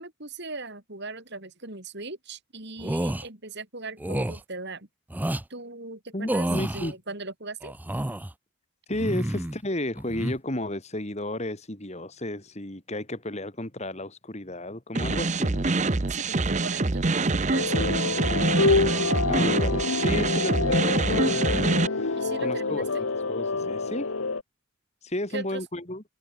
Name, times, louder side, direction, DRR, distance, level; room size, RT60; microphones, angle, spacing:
voice 1, 0.0-4.9 5.5-7.7 16.1-18.1 22.2-23.0 25.3-25.6, right 3 dB, 50° right, 4.4 m, -39 dB
sound 1, 2.8-3.3 4.0-4.4 5.1-5.4 6.3-6.9 7.6-8.3 8.9-9.6 10.0-10.4, right 1 dB, 10° right, 0.5 m, -29 dB
voice 2, 6.1-6.9 8.9-15.7 18.9-22.9 23.3-24.1 25.0-26.0, left 1 dB, 30° left, 2.3 m, -33 dB
sound 2, 14.9-21.9, right 3 dB, 30° right, 0.8 m, -25 dB
sound 3, 17.5-24.4, left 3 dB, 70° left, 1.2 m, -27 dB
head